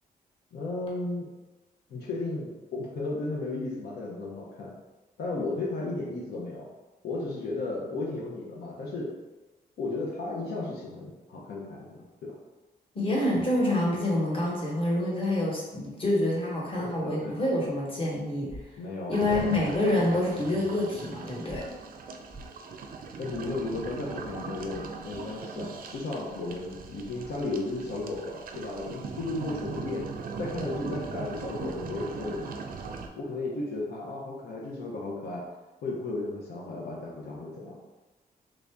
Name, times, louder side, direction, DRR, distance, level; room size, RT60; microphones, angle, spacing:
voice 1, 0.5-1.3 1.9-4.7 5.2-6.7 7.0-9.1 9.8-11.9 12.2-12.4 16.8-17.3 18.8-19.5 23.2-30.1 30.4-32.4 33.1-35.4 35.8-37.8, left 2 dB, 80° left, -4 dB, 0.7 m, -34 dB
voice 2, 12.9-18.5 19.1-21.6, left 1 dB, 35° left, -4 dB, 1.2 m, -27 dB
sound 1, 18.5-18.6 19.3-19.5 21.5-21.6 22.3-22.5, right 2 dB, 15° right, 0.5 m, -42 dB
sound 2, 19.1-33.1, right 5 dB, 60° right, 0.4 m, -40 dB
3.3 x 2.6 x 3.4 m, 1.1 s
cardioid pair, 110°, 16 cm